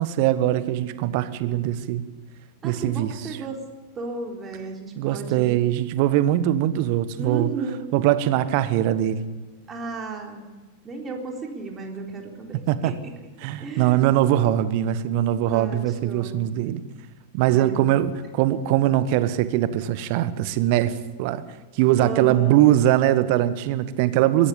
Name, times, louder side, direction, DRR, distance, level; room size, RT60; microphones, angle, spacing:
voice 1, 0.0-2.0 2.6-3.1 5.0-7.5 7.9-9.2 12.7-12.9 13.4-16.8 17.3-21.4 21.8-24.5, right 13 dB, 45° right, 14 dB, 1.3 m, -21 dB
voice 2, 2.6-3.6 4.0-5.6 7.2-8.0 9.7-10.5 10.8-13.2 13.6-14.0 15.5-16.6 17.5-17.9 18.6-18.7 22.0-22.8, right 4 dB, 20° right, 1 dB, 3.9 m, -34 dB
22.0 x 15.5 x 8.6 m, 1.2 s
figure-of-eight pair, 90°, 0 cm